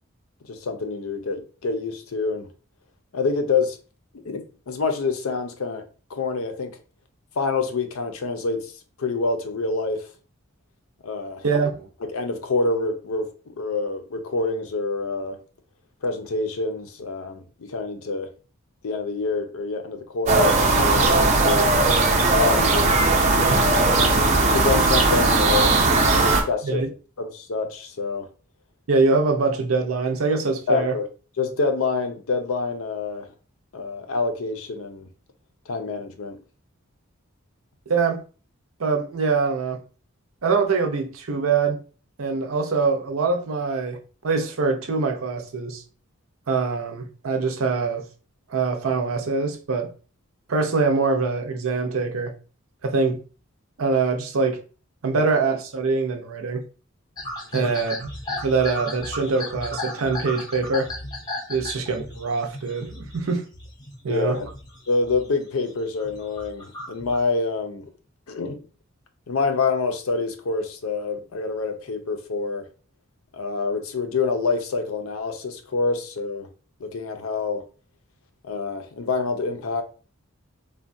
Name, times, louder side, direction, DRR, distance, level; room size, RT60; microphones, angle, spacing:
voice 1, 0.5-2.5 3.1-3.8 4.2-5.8 6.1-6.8 7.4-8.7 9.0-10.1 11.0-11.4 12.1-15.4 16.0-18.3 18.8-22.0 22.2-23.6 24.5-25.8 26.0-26.8 27.2-28.3 30.7-31.1 31.4-33.3 33.7-35.1 35.7-36.4 55.1-55.3 57.6-57.7 64.1-64.5 64.9-67.9 68.3-68.6 69.3-72.7 73.3-76.5 76.8-77.6 78.4-79.8, left 4 dB, 75° left, 0.5 m, -27 dB
voice 2, 11.4-11.9 26.6-26.9 28.9-30.9 37.9-38.2 38.8-39.8 40.4-41.8 42.2-44.0 44.2-45.8 46.5-48.0 48.5-49.9 50.5-52.3 52.8-53.2 53.8-54.6 55.0-56.6 57.5-58.1 58.4-60.9 61.5-63.4 64.0-64.4, right 4 dB, 80° right, 0.6 m, -23 dB
sound 1, 20.3-26.4, right 3 dB, 30° right, 0.5 m, -18 dB
sound 2, 57.2-64.0 64.3-65.3 65.7-67.2, left 1 dB, 20° left, 0.5 m, -35 dB
3.4 x 2.2 x 2.5 m
head